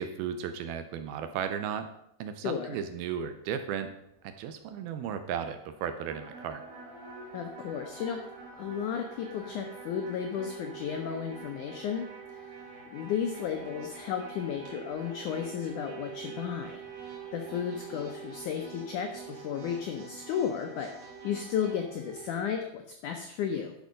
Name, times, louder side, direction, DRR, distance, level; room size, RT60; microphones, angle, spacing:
voice 1, 0.0-1.9 2.2-3.9 4.2-6.6, right 8 dB, 80° right, 8 dB, 2.4 m, -35 dB
voice 2, 2.4-2.8 7.3-8.2 8.5-12.1 12.9-16.8 17.3-20.9 21.2-23.8, left 8 dB, 85° left, 4 dB, 1.7 m, -33 dB
sound 1, 3.9-22.5, right 6 dB, 40° right, 4.0 m, -47 dB
sound 2, 6.1-21.7, right 4 dB, 60° right, 3.1 m, -50 dB
11.0 x 6.2 x 5.1 m, 0.76 s
omnidirectional pair, 4.6 m